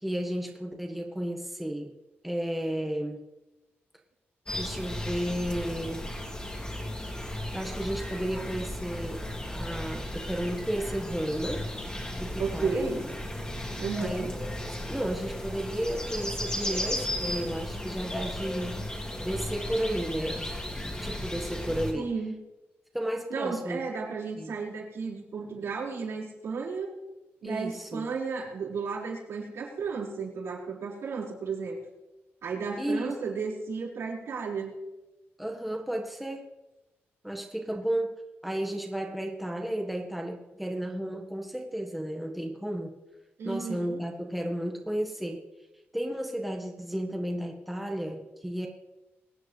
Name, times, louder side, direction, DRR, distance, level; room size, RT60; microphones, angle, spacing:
voice 1, 0.0-1.9 2.2-3.2 4.5-6.1 7.5-11.7 12.1-12.9 14.0-18.8 19.2-22.1 22.9-23.8 24.4-24.5 27.4-28.1 32.8-33.2 35.4-36.5 37.2-38.2 38.4-43.0 43.4-45.4 45.9-48.7, right 1 dB, ahead, 1 dB, 1.6 m, -33 dB
sound 1, 4.5-21.9, left 1 dB, 20° left, 2.7 m, -35 dB
voice 2, 12.4-13.0 13.8-14.3 21.9-22.4 23.3-26.9 27.4-31.8 32.4-34.7 43.4-44.0, right 5 dB, 85° right, -5 dB, 5.4 m, -33 dB
24.0 x 9.3 x 3.4 m, 1.0 s
wide cardioid pair, 115°, 4 cm